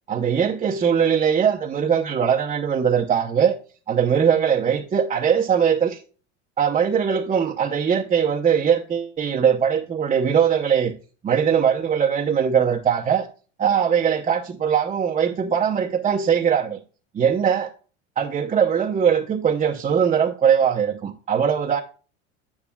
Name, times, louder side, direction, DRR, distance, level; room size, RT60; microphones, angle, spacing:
voice 1, 0.1-3.6 3.9-6.0 6.6-10.9 11.2-13.3 13.6-16.8 17.1-17.7 18.2-21.8, right 7 dB, 20° right, 0.8 m, -21 dB
9.6 x 8.6 x 2.3 m
supercardioid pair, 125°, 36 cm